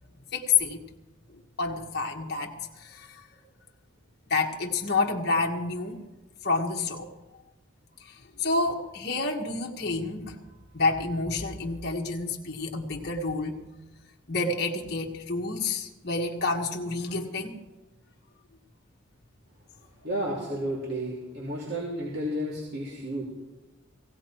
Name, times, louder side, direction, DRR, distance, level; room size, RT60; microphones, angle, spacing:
voice 1, 0.3-0.8 1.6-3.3 4.3-6.1 6.4-7.1 8.0-10.4 10.7-13.6 14.3-17.5, left 3 dB, 50° left, 0 dB, 1.4 m, -29 dB
voice 2, 20.0-23.2, equal, 50° right, -5 dB, 3.4 m, -32 dB
18.5 x 17.0 x 4.5 m, 1.1 s
head